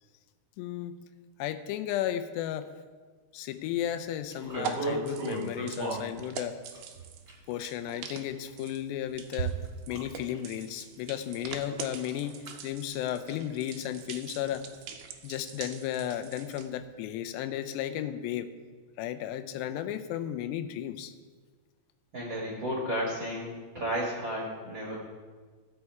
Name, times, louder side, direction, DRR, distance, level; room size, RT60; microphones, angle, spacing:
voice 1, 0.6-1.0 1.4-2.7 3.3-6.6 7.5-9.6 9.9-12.4 12.6-14.7 15.2-18.5 19.0-21.1, left 11 dB, 85° left, 9 dB, 2.8 m, -34 dB
sound 1, 3.5-16.8, right 7 dB, 85° right, 1.8 m, -44 dB
sound 2, 4.3-6.0 6.7-7.6 8.5-8.6 9.3-10.0 10.3-10.6 11.0-11.1 11.5-11.8 12.1-12.5 13.0-13.1, right 3 dB, 20° right, 1.9 m, -34 dB
voice 2, 22.1-24.9, equal, 45° right, -4 dB, 1.5 m, -33 dB
14.0 x 7.8 x 4.6 m, 1.5 s
omnidirectional pair, 4.8 m